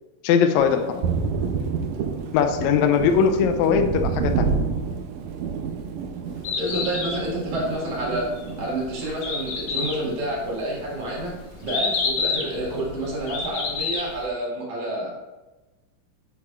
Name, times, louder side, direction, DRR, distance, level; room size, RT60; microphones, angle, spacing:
voice 1, 0.2-0.8 2.3-4.5, left 7 dB, 85° left, 6 dB, 1.6 m, -20 dB
Thunder, 0.6-10.3 10.6-11.8, right 5 dB, 80° right, 1.6 m, -29 dB
Bird, 6.3-14.3, left 4 dB, 55° left, 1.7 m, -30 dB
voice 2, 6.5-8.3 8.6-11.3 11.6-15.1, right 1 dB, 65° right, -4 dB, 3.4 m, -29 dB
8.6 x 8.4 x 2.5 m, 1.1 s
omnidirectional pair, 3.9 m